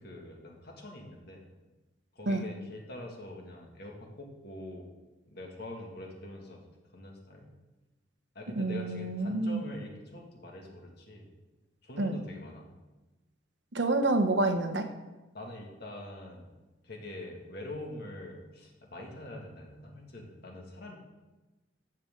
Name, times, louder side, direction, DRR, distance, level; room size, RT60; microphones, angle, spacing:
voice 1, 0.0-1.4 2.2-4.9 5.3-6.7 6.9-7.5 8.3-11.3 11.8-12.7 15.3-16.5 16.8-21.0, left 1 dB, 55° left, 0 dB, 2.0 m, -44 dB
voice 2, 8.5-9.6 12.0-12.2 13.7-14.9, right 2 dB, 65° right, 7 dB, 0.9 m, -28 dB
14.0 x 7.8 x 3.8 m, 1.1 s
head